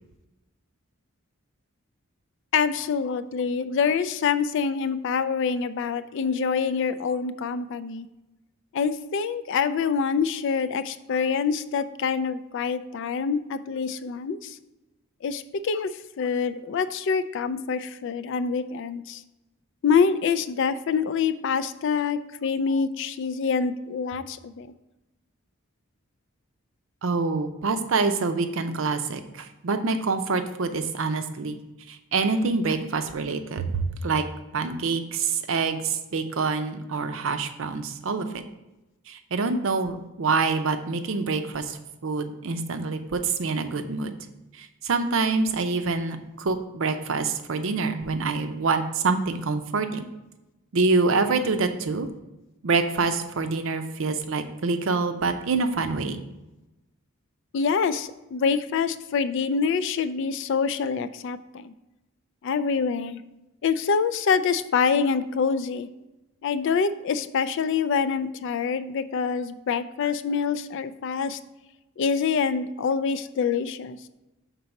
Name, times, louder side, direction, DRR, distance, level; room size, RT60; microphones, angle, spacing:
voice 1, 2.5-8.1 8.7-14.6 15.2-15.9 16.2-19.2 19.8-24.7 57.5-61.7 62.4-63.2 63.6-65.9 66.4-71.4 72.0-74.0, left 6 dB, 55° left, 12 dB, 0.3 m, -26 dB
voice 2, 27.0-31.6 31.9-34.2 34.5-38.4 39.1-44.1 44.5-50.0 50.7-52.1 52.6-56.2, right 4 dB, 60° right, 8 dB, 0.5 m, -26 dB
5.3 x 4.0 x 5.8 m, 1.0 s
head